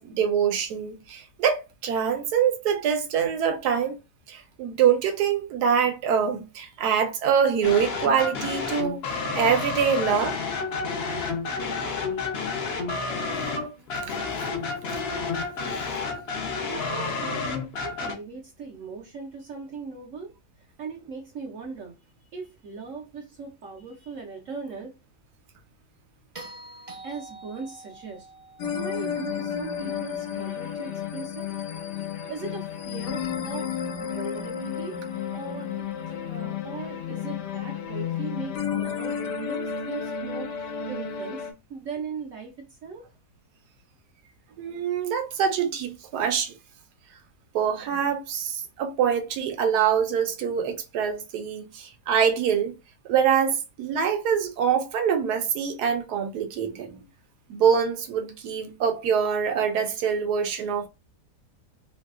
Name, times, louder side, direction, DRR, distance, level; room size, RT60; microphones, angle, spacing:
voice 1, 0.0-4.0 4.3-10.4 44.6-46.5 47.5-52.7 53.0-57.0 57.5-60.9, right 7 dB, 80° right, 1.2 m, -24 dB
sound 1, 7.6-18.1, left 4 dB, 55° left, 0.7 m, -30 dB
voice 2, 16.6-17.5 17.8-22.0 22.3-25.0 27.0-28.3 28.7-31.5 32.3-33.7 34.0-35.0 35.3-43.1, right 5 dB, 60° right, 0.9 m, -39 dB
sound 2, 26.3-30.6 32.9-33.0, right 2 dB, 35° right, 0.6 m, -46 dB
sound 3, 28.6-41.5, left 8 dB, 80° left, 1.3 m, -32 dB
3.2 x 2.7 x 2.3 m
omnidirectional pair, 1.7 m